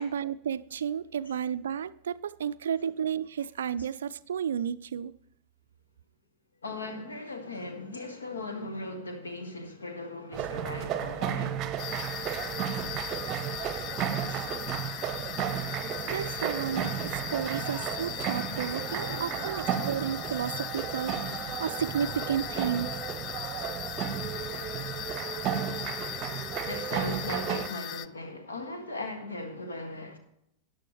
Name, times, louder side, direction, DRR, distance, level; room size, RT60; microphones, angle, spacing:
voice 1, 0.0-5.1 16.1-22.9, right 8 dB, 65° right, 0.3 m, -32 dB
voice 2, 6.6-11.7 14.3-14.5 14.9-15.0 15.7-16.8 17.6-17.7 19.0-19.6 22.5-22.7 26.7-30.2, left 2 dB, 75° left, 1.7 m, -39 dB
sound 1, 10.3-27.7, right 9 dB, 35° right, 0.7 m, -33 dB
sound 2, 11.8-28.1, left 13 dB, 40° left, 0.4 m, -39 dB
13.5 x 9.5 x 3.2 m
figure-of-eight pair, 90°, 0 cm